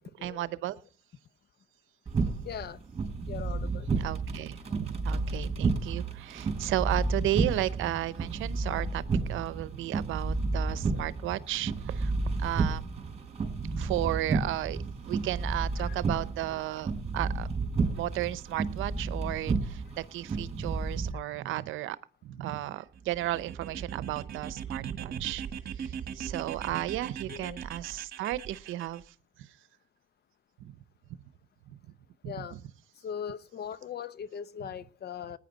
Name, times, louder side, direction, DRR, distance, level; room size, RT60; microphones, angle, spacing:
voice 1, 0.2-0.8 3.9-12.1 12.4-12.8 13.7-14.8 15.1-17.5 17.9-22.0 22.2-25.4 25.8-29.5 30.6-30.8 31.7-31.8 32.2-32.6 34.6-34.7, right 14 dB, 90° right, 0.7 m, -34 dB
sound 1, 2.1-21.1, right 3 dB, 30° right, 4.8 m, -31 dB
voice 2, 2.4-2.8 3.3-3.9 15.8-15.9 27.3-27.6 32.2-32.6 33.0-35.4, left 8 dB, 55° left, 0.8 m, -39 dB
sound 2, 22.9-29.0, right 7 dB, 50° right, 1.8 m, -40 dB
20.0 x 9.7 x 4.0 m
cardioid pair, 90°, 20 cm